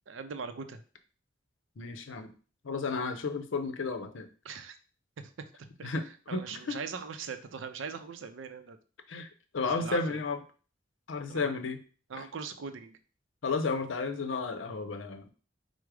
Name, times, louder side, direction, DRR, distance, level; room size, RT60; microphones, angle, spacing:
voice 1, 0.1-0.8 4.4-4.8 5.2-5.3 5.6-5.9 6.3-8.8 9.6-10.2 11.3-11.6 12.1-13.0, right 5 dB, 90° right, 9 dB, 0.5 m, -41 dB
voice 2, 1.8-2.3 2.6-4.3 5.8-6.1 6.3-6.8 9.1-9.3 9.5-10.4 11.1-11.8 12.1-12.3 13.4-15.3, left 4 dB, 85° left, 8 dB, 0.6 m, -33 dB
4.8 x 2.0 x 4.7 m, 0.38 s
head